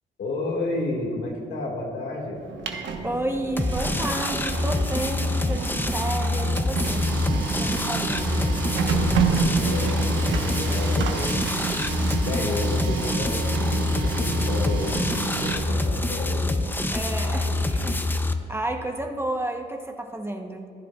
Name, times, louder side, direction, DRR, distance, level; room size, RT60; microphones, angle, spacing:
voice 1, 0.2-2.4 8.8-11.7 12.2-16.6 17.3-17.6, left 2 dB, 70° left, -2 dB, 1.8 m, -32 dB
Printer, 2.4-18.1, right 5 dB, 70° right, 1.1 m, -29 dB
voice 2, 3.0-8.6 16.9-18.0 18.5-20.7, right 1 dB, 10° right, 4 dB, 0.8 m, -31 dB
sound 1, 3.6-18.3, left 2 dB, 10° left, 0.5 m, -26 dB
15.5 x 10.5 x 2.3 m, 2.4 s
cardioid pair, 90°, 20 cm